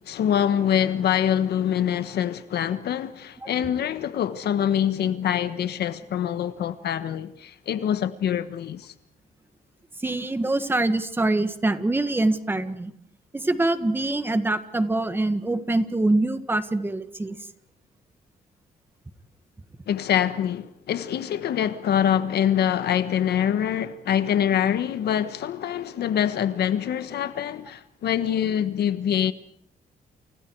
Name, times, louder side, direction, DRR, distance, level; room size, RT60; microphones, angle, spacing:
voice 1, 0.0-8.9 19.9-29.3, left 9 dB, 85° left, 1.4 m, -25 dB
voice 2, 10.0-12.9 13.3-17.4, right 2 dB, 15° right, 1.7 m, -24 dB
30.0 x 29.5 x 4.8 m
wide cardioid pair, 165°, 16 cm